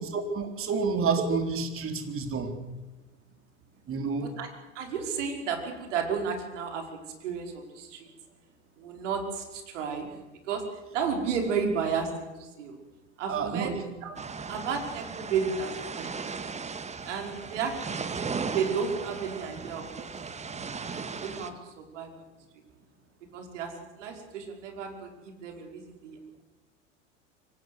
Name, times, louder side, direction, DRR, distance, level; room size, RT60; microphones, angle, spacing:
voice 1, 0.3-2.5 3.9-4.3 13.3-13.8, right 5 dB, 35° right, 6 dB, 4.0 m, -29 dB
voice 2, 4.8-6.9 7.2-8.1 8.8-10.1 10.5-10.7 10.9-12.8 13.2-13.8 14.0-14.2 14.5-16.2 17.1-20.1 20.7-20.9 21.2-22.1 23.3-26.4, right 6 dB, 70° right, 4 dB, 5.3 m, -33 dB
sound 1, 14.2-21.5, right 5 dB, 20° right, 1.9 m, -37 dB
24.5 x 18.0 x 8.1 m, 1.1 s
hypercardioid pair, 80°, 38 cm